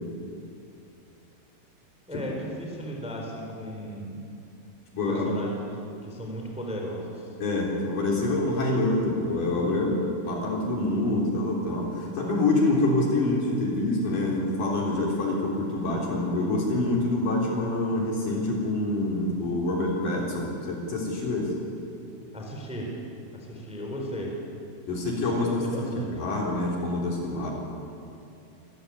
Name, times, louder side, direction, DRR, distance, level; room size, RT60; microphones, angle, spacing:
voice 1, 2.1-4.2 5.1-7.3 22.3-22.9 23.3-24.3 25.3-26.2, equal, ahead, 0 dB, 3.3 m, -36 dB
voice 2, 4.9-5.4 7.4-21.5 24.8-25.5 25.9-27.5, left 2 dB, 55° left, -2 dB, 5.1 m, -26 dB
25.5 x 15.0 x 9.7 m, 2.6 s
omnidirectional pair, 4.7 m